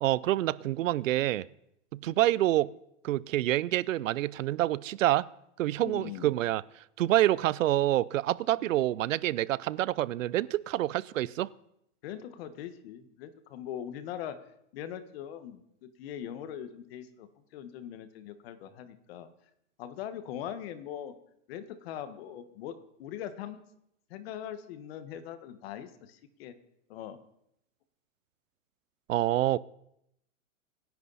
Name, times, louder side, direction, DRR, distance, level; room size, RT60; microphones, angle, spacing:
voice 1, 0.0-1.5 1.9-2.7 3.0-5.3 5.6-6.6 7.0-11.5 29.1-29.6, right 14 dB, 90° right, 21 dB, 0.7 m, -27 dB
voice 2, 5.8-6.3 8.6-8.8 12.0-14.4 14.7-17.3 17.5-19.3 19.8-21.1 21.5-22.7 23.0-23.6 24.1-26.5 26.9-27.2, left 10 dB, 50° left, 11 dB, 1.6 m, -41 dB
25.5 x 10.5 x 4.2 m, 0.77 s
supercardioid pair, 155°, 38 cm